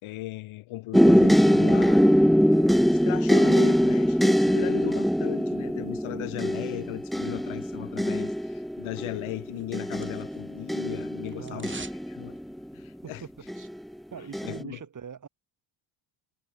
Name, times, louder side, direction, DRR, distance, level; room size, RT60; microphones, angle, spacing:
voice 1, 0.0-11.7 12.1-12.4 12.7-13.2 14.5-14.8, left 17 dB, 90° left, 4.5 m, -37 dB
sound 1, 0.9-12.8 13.5-13.9 14.3-14.6, equal, ahead, 0.4 m, -23 dB
sound 2, 9.3-10.5 10.8-12.1 12.4-12.5, right 5 dB, 25° right, 2.7 m, -44 dB
voice 2, 11.4-11.8 13.0-13.7 14.1-15.3, right 7 dB, 40° right, 6.2 m, -42 dB
cardioid pair, 115°, 47 cm